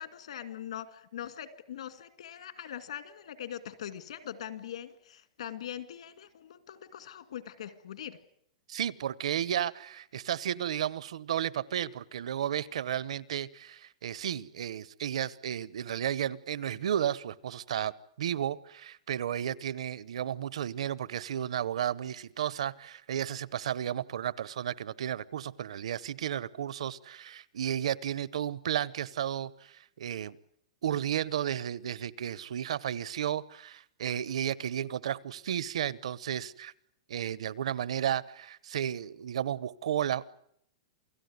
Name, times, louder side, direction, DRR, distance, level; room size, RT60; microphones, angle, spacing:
voice 1, 0.0-8.2, left 10 dB, 75° left, 12 dB, 2.1 m, -42 dB
voice 2, 8.7-17.9 18.2-30.4 30.8-36.7 37.1-40.2, right 10 dB, 80° right, 20 dB, 1.0 m, -33 dB
28.5 x 17.0 x 9.5 m, 0.71 s
supercardioid pair, 175°, 3 cm